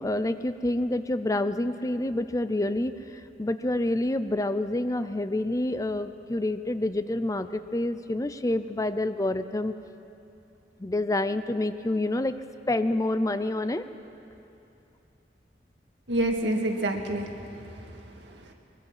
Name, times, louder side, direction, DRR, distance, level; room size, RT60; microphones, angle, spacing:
voice 1, 0.0-9.7 10.8-12.3 12.7-13.8, left 1 dB, 20° left, 11 dB, 0.5 m, -28 dB
voice 2, 16.1-18.5, right 1 dB, 85° right, 2 dB, 2.0 m, -29 dB
23.0 x 22.0 x 5.7 m, 2.8 s
head